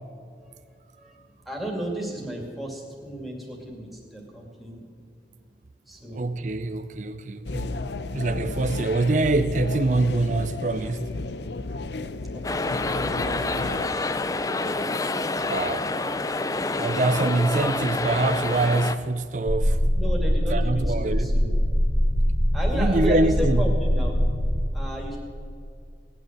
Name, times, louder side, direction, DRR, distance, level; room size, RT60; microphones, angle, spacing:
voice 1, 1.4-4.8 5.9-6.3 12.3-14.1 19.9-21.6 22.5-24.1 24.7-25.2, right 1 dB, ahead, 2.5 m, -34 dB
voice 2, 6.1-7.8 8.1-11.1 15.3-15.9 16.8-19.8 20.5-21.3 22.7-23.7, right 2 dB, 45° right, 0.5 m, -24 dB
sound 1, 7.4-13.9, left 2 dB, 80° left, 0.7 m, -33 dB
sound 2, 12.4-19.0, left 2 dB, 20° left, 0.5 m, -27 dB
sound 3, 19.5-24.6, equal, 35° left, 1.2 m, -23 dB
18.5 x 9.3 x 7.5 m
head